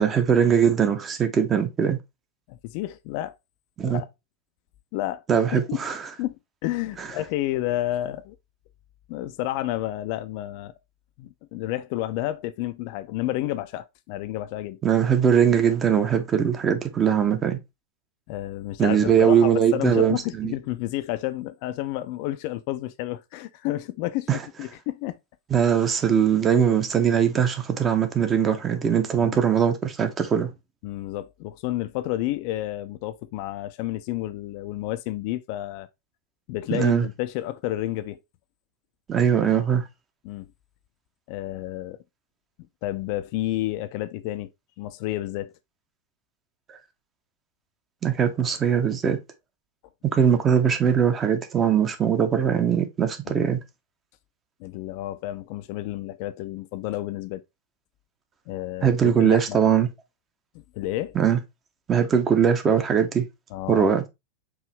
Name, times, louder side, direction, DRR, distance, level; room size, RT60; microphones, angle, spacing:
voice 1, 0.0-2.0 3.8-4.0 5.3-6.0 7.0-7.1 14.8-17.6 18.8-20.5 24.3-24.4 25.5-30.5 36.7-37.1 39.1-39.8 48.0-49.2 50.1-53.6 58.8-59.9 61.1-61.4 61.9-63.3 63.7-64.1, right 8 dB, 25° right, 0.6 m, -21 dB
voice 2, 2.5-3.4 3.8-4.1 4.9-5.2 5.5-5.8 6.2-6.3 6.6-8.4 9.1-10.7 11.2-14.8 18.3-24.3 24.6-25.2 29.2-29.5 30.8-35.9 36.5-38.2 40.2-40.5 41.3-42.0 42.8-44.5 44.8-45.5 53.3-53.5 54.6-57.4 58.5-59.6 60.7-61.2 63.5-64.1, left 15 dB, 45° left, 0.3 m, -30 dB
4.7 x 2.7 x 3.1 m
figure-of-eight pair, 90°, 0 cm